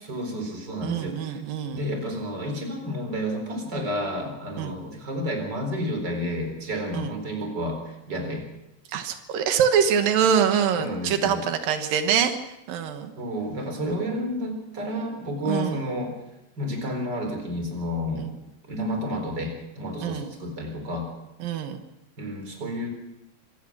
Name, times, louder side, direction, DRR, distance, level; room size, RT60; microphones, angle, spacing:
voice 1, 0.1-1.4 1.7-8.4 10.8-11.4 13.2-16.1 16.6-18.4 18.7-21.1 22.2-22.9, equal, 30° right, 3 dB, 4.6 m, -31 dB
voice 2, 0.8-1.8 4.6-4.8 6.9-7.1 8.9-12.4 12.7-13.1 15.5-15.8 18.2-18.3 20.0-20.3 21.4-21.8, right 8 dB, 90° right, 7 dB, 3.1 m, -24 dB
25.5 x 17.5 x 6.1 m, 0.92 s
omnidirectional pair, 3.9 m